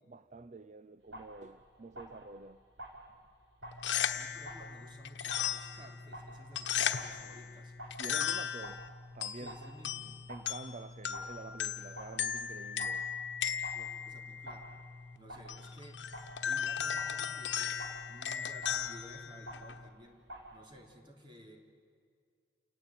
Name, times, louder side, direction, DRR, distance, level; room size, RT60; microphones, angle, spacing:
voice 1, 0.1-2.6 8.0-9.5 10.3-13.1, right 3 dB, 40° right, 14 dB, 0.6 m, -48 dB
sound 1, 1.0-20.6, right 1 dB, 85° right, 4.5 m, -51 dB
sound 2, 3.6-19.9, left 8 dB, 85° left, 1.1 m, -37 dB
voice 2, 4.1-7.7 9.3-10.2 13.7-14.7 15.2-20.3 20.5-21.6, equal, 25° right, 2 dB, 3.4 m, -55 dB
29.5 x 19.0 x 8.9 m, 2.1 s
head